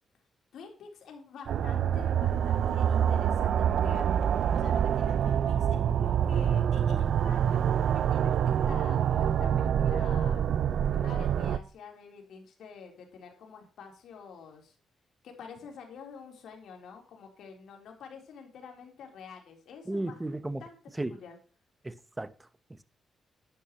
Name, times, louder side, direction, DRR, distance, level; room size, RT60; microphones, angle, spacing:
voice 1, 0.5-4.1 4.5-10.4 10.9-14.7 15.2-20.2 20.6-20.8 21.1-21.4, left 6 dB, 80° left, 3.8 m, -48 dB
sound 1, 1.5-11.6, right 9 dB, 75° right, 0.5 m, -26 dB
voice 2, 19.9-20.6 21.0-21.2 21.8-22.3 22.7-22.8, right 2 dB, 15° right, 1.0 m, -34 dB
11.5 x 10.0 x 3.1 m
cardioid pair, 85°, 0 cm